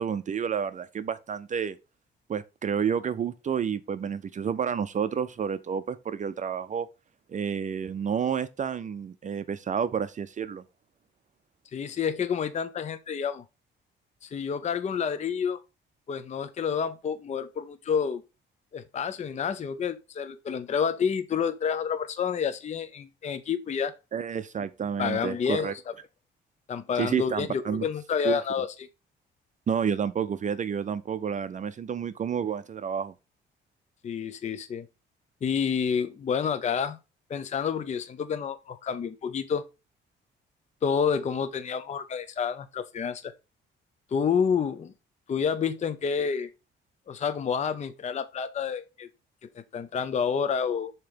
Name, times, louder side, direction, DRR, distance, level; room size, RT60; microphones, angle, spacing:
voice 1, 0.0-1.8 2.3-6.9 7.3-10.6 24.1-25.7 27.0-27.9 28.2-28.4 29.7-33.1, right 7 dB, 40° right, 0.5 m, -30 dB
voice 2, 11.7-13.4 14.2-15.6 16.1-18.2 18.7-23.9 25.0-25.8 26.7-28.9 34.0-34.9 35.4-37.0 37.3-39.6 40.8-43.3 44.1-44.9 45.3-46.5 47.1-49.1 49.5-50.9, left 6 dB, 35° left, 0.5 m, -29 dB
6.9 x 2.9 x 5.1 m
cardioid pair, 90°, 20 cm